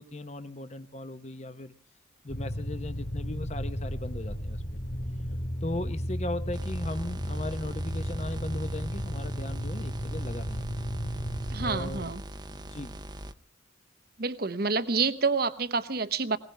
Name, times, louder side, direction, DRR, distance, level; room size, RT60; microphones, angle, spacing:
voice 1, 0.0-1.7 2.2-4.6 5.6-10.7 11.1-11.2 11.6-12.1 12.5-13.0, left 1 dB, 35° left, 9 dB, 0.9 m, -37 dB
sound 1, 2.3-12.0, equal, 60° left, 3.1 m, -34 dB
sound 2, 6.5-13.3, right 1 dB, 20° right, 0.7 m, -42 dB
voice 2, 11.5-12.2 14.2-16.4, right 4 dB, 50° right, 12 dB, 1.0 m, -28 dB
21.0 x 19.0 x 3.4 m, 0.42 s
head